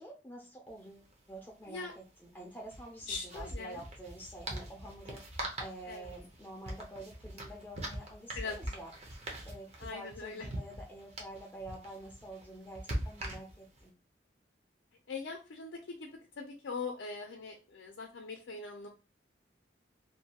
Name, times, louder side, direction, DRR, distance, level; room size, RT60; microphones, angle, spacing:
voice 1, 0.0-13.9, right 1 dB, 10° left, -3 dB, 0.4 m, -48 dB
sound 1, 0.7-0.8 1.0-1.1 2.6-13.8, right 1 dB, 35° right, 0.6 m, -42 dB
voice 2, 3.1-3.8 5.9-6.0 8.3-8.6 9.8-10.5 15.1-16.1 16.4-18.9, left 4 dB, 85° left, 2 dB, 0.5 m, -41 dB
2.6 x 2.2 x 2.8 m, 0.31 s
head